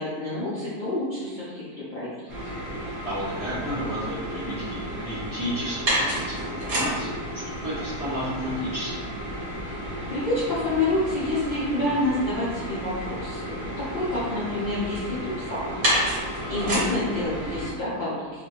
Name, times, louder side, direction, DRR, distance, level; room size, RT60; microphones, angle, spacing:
voice 1, 0.0-2.1 10.1-18.4, left 2 dB, 80° left, -11 dB, 0.4 m, -28 dB
sound 1, 2.3-17.7, equal, 45° right, 1.0 m, -31 dB
voice 2, 3.0-8.9 16.4-16.7, equal, 25° right, -12 dB, 1.2 m, -32 dB
2.6 x 2.4 x 2.8 m, 1.4 s
omnidirectional pair, 1.7 m